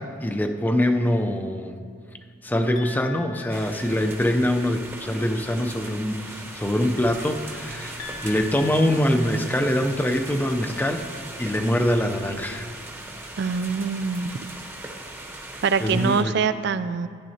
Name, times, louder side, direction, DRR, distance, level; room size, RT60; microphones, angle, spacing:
voice 1, 0.0-1.8 2.4-11.1 11.4-12.7 15.8-16.4, left 1 dB, 10° left, 5 dB, 0.5 m, -24 dB
sound 1, 2.8-4.4 8.0-10.0, left 6 dB, 65° left, 1.2 m, -42 dB
sound 2, 3.5-16.2, right 1 dB, 15° right, 0.9 m, -39 dB
voice 2, 13.4-14.3 15.6-17.1, right 5 dB, 60° right, 12 dB, 0.4 m, -24 dB
14.0 x 10.5 x 2.8 m, 2.2 s
head